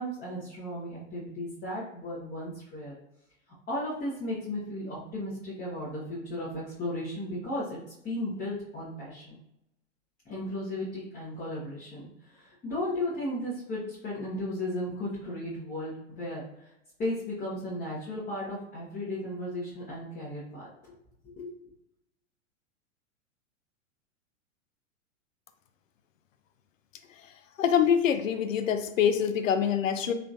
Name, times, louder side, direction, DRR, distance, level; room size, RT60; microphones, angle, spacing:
voice 1, 0.0-2.9 3.7-7.8 8.0-9.3 10.2-16.7 17.0-20.9 21.4-21.5, left 1 dB, 25° left, -8 dB, 1.1 m, -35 dB
voice 2, 27.6-30.1, left 8 dB, 80° left, 10 dB, 0.5 m, -25 dB
3.7 x 3.3 x 2.6 m, 0.82 s
hypercardioid pair, 100°, 38 cm